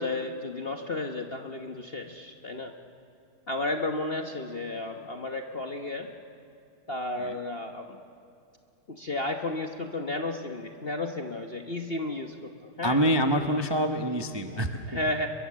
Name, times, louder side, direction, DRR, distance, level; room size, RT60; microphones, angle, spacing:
voice 1, 0.0-2.7 3.5-6.1 6.9-8.0 8.9-12.3 12.6-13.0 14.9-15.3, left 2 dB, 40° left, 4 dB, 0.9 m, -33 dB
voice 2, 12.8-15.0, equal, 25° right, 4 dB, 0.6 m, -26 dB
28.5 x 22.5 x 7.5 m, 2.5 s
omnidirectional pair, 2.3 m